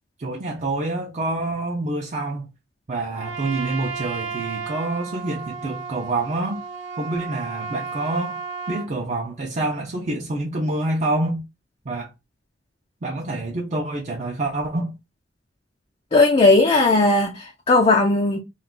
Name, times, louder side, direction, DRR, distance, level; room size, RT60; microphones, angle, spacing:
voice 1, 0.2-2.5 2.9-6.6 7.0-8.4 8.7-11.4 11.9-12.1 13.0-14.9, right 2 dB, 40° right, 0.5 m, -27 dB
Trumpet, 3.1-8.9, right 5 dB, 75° right, 0.9 m, -33 dB
voice 2, 16.1-18.4, left 2 dB, 30° left, 0.4 m, -17 dB
2.4 x 2.3 x 3.6 m
head